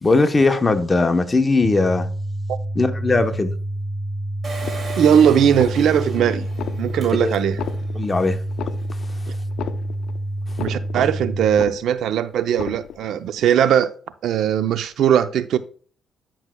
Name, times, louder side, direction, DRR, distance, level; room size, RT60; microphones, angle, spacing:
voice 1, 0.0-2.1 2.7-3.5 7.2-7.3 7.9-8.4, left 3 dB, 25° left, 0.9 m, -19 dB
sound 1, 1.6-11.6, right 1 dB, ahead, 1.1 m, -28 dB
Engine, 4.4-7.9 8.4-8.5 8.7-8.8, right 3 dB, 35° right, 2.4 m, -36 dB
sound 2, 4.6-5.2 5.4-6.2 6.5-7.2 7.4-8.2 8.5-9.2 9.4-10.2 10.5-11.2 11.4-12.2 12.5-13.2, left 9 dB, 75° left, 0.6 m, -33 dB
voice 2, 5.0-6.4 6.8-7.6 10.6-13.9 14.2-15.6, right 9 dB, 75° right, 0.5 m, -19 dB
9.9 x 6.0 x 2.2 m
cardioid pair, 90°, 0 cm